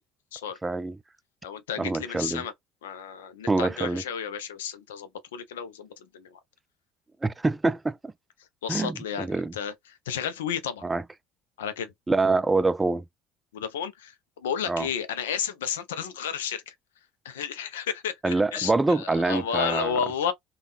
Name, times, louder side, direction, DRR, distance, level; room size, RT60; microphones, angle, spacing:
voice 1, 0.6-1.0 1.8-2.4 3.5-4.0 7.2-8.1 8.7-9.5 10.8-11.0 12.1-13.0 14.7-14.9 18.2-20.0, right 3 dB, 20° right, 0.3 m, -25 dB
voice 2, 1.4-2.5 2.8-5.9 6.1-6.4 8.6-9.7 10.1-10.8 11.6-11.9 13.5-14.1 14.4-16.7 17.2-20.3, left 8 dB, 80° left, 0.5 m, -32 dB
3.5 x 2.2 x 2.4 m
hypercardioid pair, 60°, 0 cm